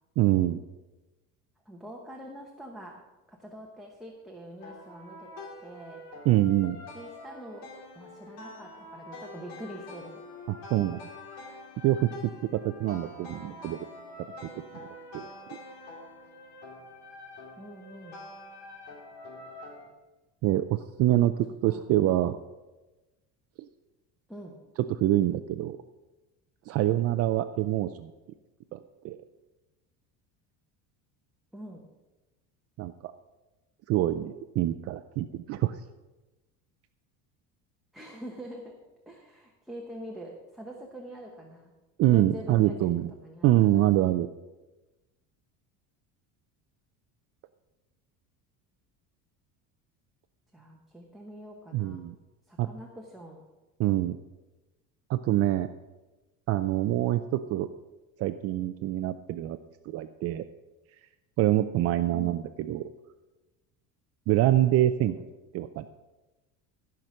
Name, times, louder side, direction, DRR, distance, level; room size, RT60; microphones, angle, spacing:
voice 1, 0.2-0.6 6.3-6.8 10.5-11.0 11.3-11.4 11.8-12.1 12.5-13.9 14.7-14.9 15.1-15.3 20.4-22.4 25.0-25.8 26.7-28.1 28.7-28.8 29.0-29.2 32.8-33.1 33.9-35.8 42.0-43.1 43.4-44.3 51.7-52.1 52.6-52.7 53.8-54.2 55.1-55.7 56.5-57.7 58.2-59.6 59.8-60.4 61.4-62.9 64.3-65.2 65.5-65.9, right 14 dB, 45° right, 9 dB, 0.4 m, -25 dB
voice 2, 1.6-2.9 3.3-5.3 5.6-6.0 6.9-7.7 7.9-10.2 17.6-18.2 21.7-21.8 24.3-24.6 31.5-31.8 37.9-38.7 39.1-41.7 42.1-42.9 43.2-43.9 50.5-52.0 52.5-53.4 62.1-62.4 65.0-65.2, equal, ahead, -2 dB, 1.0 m, -44 dB
sound 1, 4.6-19.9, left 2 dB, 70° left, 2.7 m, -46 dB
14.0 x 5.9 x 6.3 m, 1.1 s
cardioid pair, 160°, 35 cm